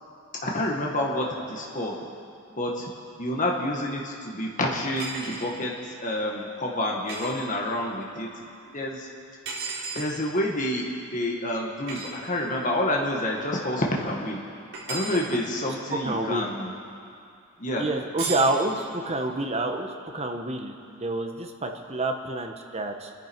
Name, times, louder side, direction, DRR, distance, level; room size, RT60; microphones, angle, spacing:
voice 1, 0.4-1.9 2.6-2.8 3.2-5.7 6.0-8.3 8.7-9.1 9.9-14.4 14.9-16.7 17.6-17.8, left 1 dB, 35° left, -1 dB, 1.7 m, -28 dB
sound 1, 5.0-5.4 7.1-7.3 9.4-10.1 11.9-12.1 14.7-15.3 18.2-18.5, right 4 dB, 55° right, 3.9 m, -34 dB
voice 2, 15.9-16.5 17.8-23.1, right 2 dB, 30° right, 4 dB, 1.1 m, -28 dB
29.0 x 10.5 x 4.6 m, 2.5 s
head